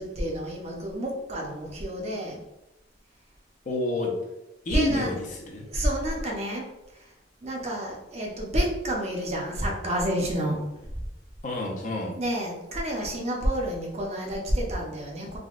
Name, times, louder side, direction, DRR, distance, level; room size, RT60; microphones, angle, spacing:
voice 1, 0.0-2.4 4.7-5.1 5.7-7.1 7.4-10.7 12.2-15.4, equal, 35° right, -1 dB, 0.6 m, -29 dB
voice 2, 3.7-4.2 4.7-5.7 11.4-12.2, left 2 dB, 45° left, 0 dB, 0.5 m, -29 dB
3.5 x 2.2 x 2.4 m, 0.95 s
head